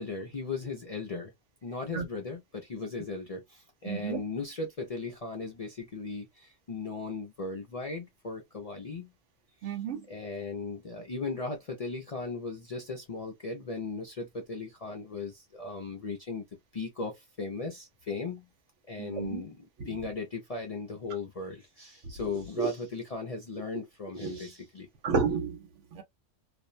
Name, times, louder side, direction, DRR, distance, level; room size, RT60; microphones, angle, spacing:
voice 1, 0.0-1.3 1.6-9.1 9.6-9.8 10.1-16.4 16.7-18.5 18.9-24.9, left 3 dB, 50° left, 0.4 m, -37 dB
voice 2, 3.8-4.2 9.6-10.0 19.0-19.4 19.8-19.9 22.2-22.7 24.2-24.4 25.0-26.0, right 5 dB, 75° right, 1.1 m, -32 dB
2.5 x 2.1 x 2.4 m
omnidirectional pair, 1.2 m